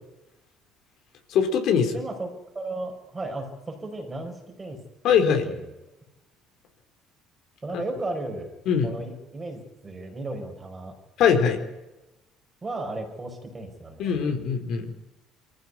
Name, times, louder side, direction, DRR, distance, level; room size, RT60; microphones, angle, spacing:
voice 1, 1.3-2.0 5.0-5.5 8.7-8.9 11.2-11.6 14.0-14.9, left 7 dB, 60° left, 5 dB, 4.0 m, -21 dB
voice 2, 1.9-2.3 2.5-4.8 5.3-5.6 7.6-8.5 8.8-11.0 12.6-14.3, right 2 dB, 15° right, 3 dB, 5.1 m, -35 dB
24.5 x 15.0 x 9.6 m, 0.99 s
cardioid pair, 155°, 0 cm